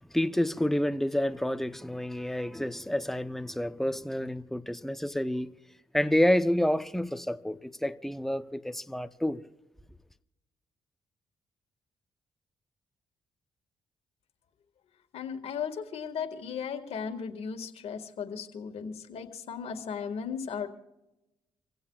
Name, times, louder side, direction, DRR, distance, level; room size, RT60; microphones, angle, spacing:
voice 1, 0.1-5.5 5.9-9.4, left 1 dB, 5° left, 0.8 m, -29 dB
voice 2, 15.1-20.7, left 6 dB, 70° left, 1.9 m, -36 dB
26.5 x 16.0 x 2.4 m
cardioid pair, 70°, 11 cm